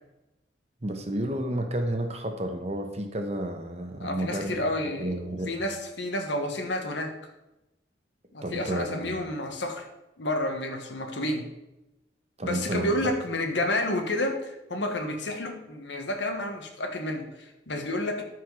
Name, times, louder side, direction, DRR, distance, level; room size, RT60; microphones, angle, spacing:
voice 1, 0.8-4.6 5.0-5.5 8.4-9.1 12.4-12.9, right 1 dB, 35° right, 5 dB, 1.1 m, -31 dB
voice 2, 4.0-7.1 8.3-9.9 10.2-11.5 12.4-18.2, left 1 dB, 85° left, 4 dB, 1.4 m, -30 dB
13.5 x 4.7 x 4.8 m, 0.97 s
head